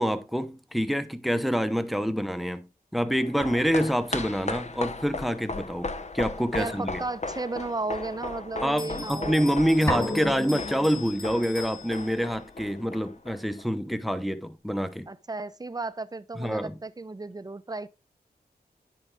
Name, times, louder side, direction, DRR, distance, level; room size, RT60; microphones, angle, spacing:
voice 1, 0.0-7.0 8.6-15.1 16.4-16.8, equal, ahead, 1.0 m, -27 dB
sound 1, 3.1-13.6 13.9-14.0, left 3 dB, 45° left, 1.0 m, -37 dB
voice 2, 6.5-9.5 9.8-9.9 15.1-17.9, right 3 dB, 25° right, 0.7 m, -34 dB
Bell, 8.8-12.5, left 5 dB, 60° left, 1.9 m, -42 dB
sound 2, 9.9-11.7, equal, 15° left, 1.6 m, -32 dB
10.5 x 4.9 x 3.5 m
cardioid pair, 50°, 17 cm